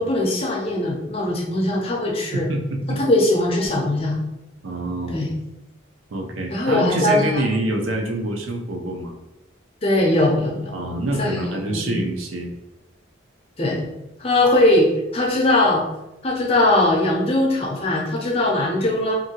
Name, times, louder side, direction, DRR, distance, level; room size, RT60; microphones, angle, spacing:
voice 1, 0.0-2.5 3.0-4.2 5.1-5.3 6.5-7.5 9.8-10.7 11.2-11.4 11.7-12.1 13.6-13.9 14.2-15.8 16.2-19.1, left 1 dB, 30° left, -2 dB, 0.6 m, -20 dB
voice 2, 2.3-3.0 4.6-5.2 6.1-9.1 10.7-12.5, right 1 dB, 85° right, 2 dB, 0.5 m, -26 dB
2.6 x 2.6 x 2.8 m, 0.94 s
head